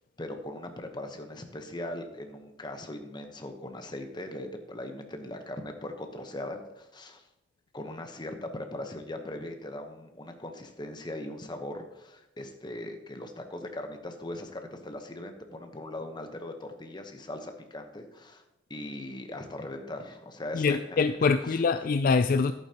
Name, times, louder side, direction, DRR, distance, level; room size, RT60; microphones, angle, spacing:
voice 1, 0.2-7.2 7.7-18.4 18.7-21.0 21.4-21.6, left 1 dB, 25° left, 5 dB, 1.0 m, -39 dB
voice 2, 20.5-22.5, left 4 dB, 55° left, 10 dB, 0.4 m, -24 dB
11.0 x 8.9 x 2.9 m, 0.91 s
head